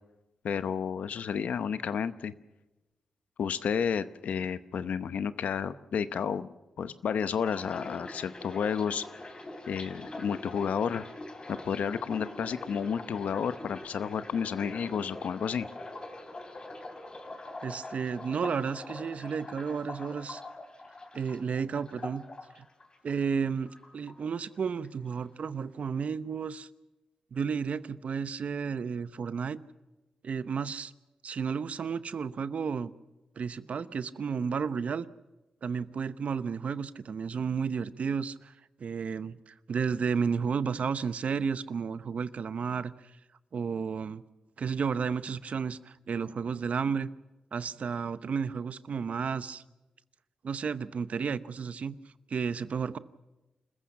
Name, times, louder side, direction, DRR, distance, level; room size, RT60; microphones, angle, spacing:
voice 1, 0.4-2.3 3.4-6.5 6.8-9.0 9.7-11.0 11.5-15.7, left 7 dB, 85° left, 13 dB, 0.9 m, -31 dB
sound 1, 7.4-23.4 23.7-24.6 24.8-25.2, left 2 dB, 40° left, 3.4 m, -44 dB
voice 2, 17.6-20.4 21.1-22.2 22.6-22.7 23.0-26.7 27.3-29.6 30.2-30.9 31.2-32.9 33.4-35.1 35.6-38.5 38.8-42.9 43.5-44.2 44.6-47.1 47.5-49.6 50.4-51.9 52.3-53.0, right 6 dB, 65° right, 15 dB, 0.8 m, -32 dB
27.5 x 15.0 x 7.4 m, 1.0 s
cardioid pair, 60°, 2 cm